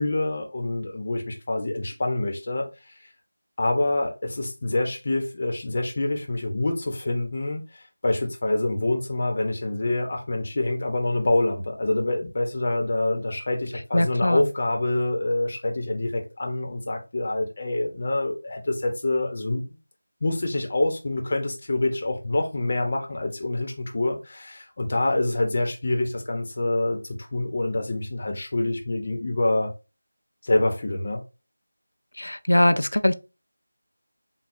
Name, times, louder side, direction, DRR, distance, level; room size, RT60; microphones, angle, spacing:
voice 1, 0.0-2.7 3.6-19.8 20.2-29.7 30.4-31.2, left 2 dB, 40° left, 1.0 m, -26 dB
voice 2, 13.9-14.5 32.2-33.1, left 1 dB, 80° left, 0.5 m, -21 dB
6.9 x 2.3 x 2.7 m
figure-of-eight pair, 170°, 0 cm